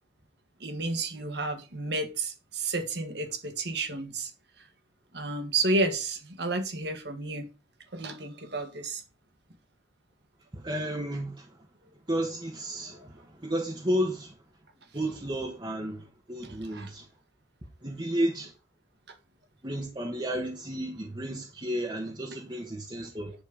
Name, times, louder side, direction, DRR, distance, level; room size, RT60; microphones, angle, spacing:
voice 1, 0.6-4.3 5.1-7.4 7.9-9.0 16.4-16.9, right 3 dB, 60° right, 1.7 m, -31 dB
voice 2, 10.5-11.5 12.1-14.3 14.9-17.1 17.8-18.5 19.6-23.3, equal, 25° right, 1.2 m, -32 dB
10.5 x 4.3 x 5.3 m
head